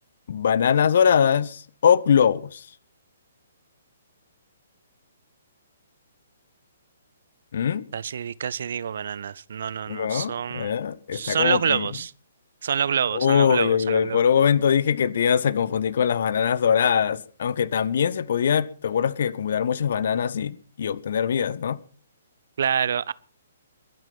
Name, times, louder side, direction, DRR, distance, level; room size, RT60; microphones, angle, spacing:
voice 1, 0.3-2.7 7.5-7.8 9.9-11.9 13.1-21.8, left 7 dB, 50° left, 1.0 m, -22 dB
voice 2, 7.9-10.7 11.1-12.1 12.6-14.2 22.6-23.1, right 7 dB, 55° right, 0.7 m, -27 dB
22.5 x 9.2 x 6.0 m
figure-of-eight pair, 125°, 0 cm